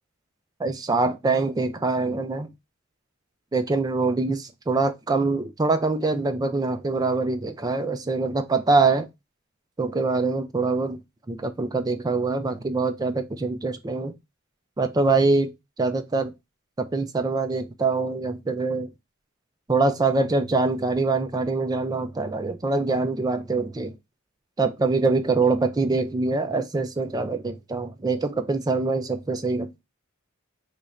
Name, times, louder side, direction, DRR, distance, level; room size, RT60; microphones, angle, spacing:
voice 1, 0.6-2.5 3.5-9.1 9.8-11.0 11.3-14.1 14.8-15.5 15.8-16.3 16.8-18.9 19.7-24.0 24.6-29.8, right 3 dB, 20° right, 0.3 m, -24 dB
3.2 x 2.4 x 4.0 m
head